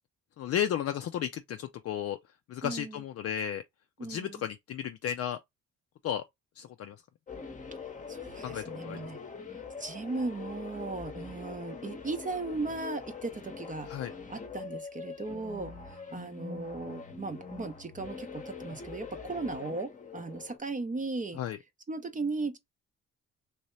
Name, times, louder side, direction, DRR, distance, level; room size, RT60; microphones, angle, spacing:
voice 1, 0.4-2.2 2.5-3.6 4.1-5.4 6.0-6.2 6.6-7.0 8.4-9.0 13.9-14.1 21.4-21.6, left 9 dB, 55° left, 0.4 m, -33 dB
voice 2, 2.6-3.0 4.0-4.4 8.1-9.2 9.8-13.9 14.3-21.4 21.9-22.6, right 3 dB, 25° right, 0.6 m, -37 dB
sound 1, 7.3-20.6, left 5 dB, 25° left, 0.9 m, -43 dB
3.2 x 2.7 x 3.1 m
cardioid pair, 90°, 30 cm